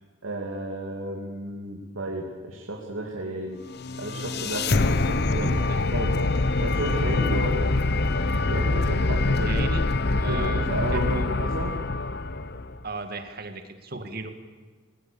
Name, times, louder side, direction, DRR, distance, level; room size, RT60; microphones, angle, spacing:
voice 1, 0.2-3.6 4.0-5.6 5.9-6.2 6.6-7.7 8.4-9.8 10.2-11.7, right 1 dB, 80° right, -1 dB, 2.7 m, -33 dB
sound 1, 3.7-12.8, left 2 dB, 55° left, 0.8 m, -25 dB
voice 2, 9.4-9.9 10.2-11.3 12.8-14.4, right 3 dB, 50° right, 7 dB, 2.0 m, -36 dB
26.5 x 18.5 x 7.1 m, 1.4 s
head